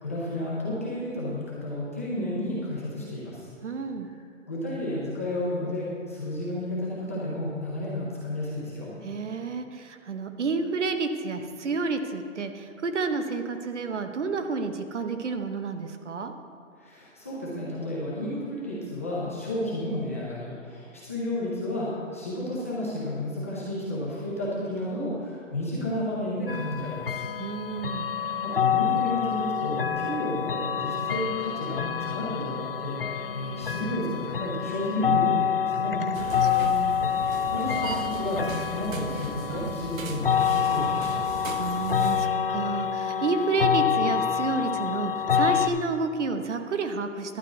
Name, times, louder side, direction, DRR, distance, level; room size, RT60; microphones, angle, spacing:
voice 1, 0.0-3.5 4.5-8.9 16.8-27.2 28.2-36.0 37.2-38.5 38.7-41.4, left 1 dB, 10° left, -8 dB, 0.7 m, -32 dB
voice 2, 3.6-4.1 9.0-16.3 27.4-28.1 36.0-37.1 41.5-47.4, right 4 dB, 60° right, 7 dB, 1.0 m, -30 dB
sound 1, 26.5-45.7, left 8 dB, 45° left, 0.5 m, -27 dB
sound 2, 36.1-42.3, right 5 dB, 85° right, 0.9 m, -37 dB
11.5 x 4.7 x 8.3 m, 2.3 s
hypercardioid pair, 175°, 39 cm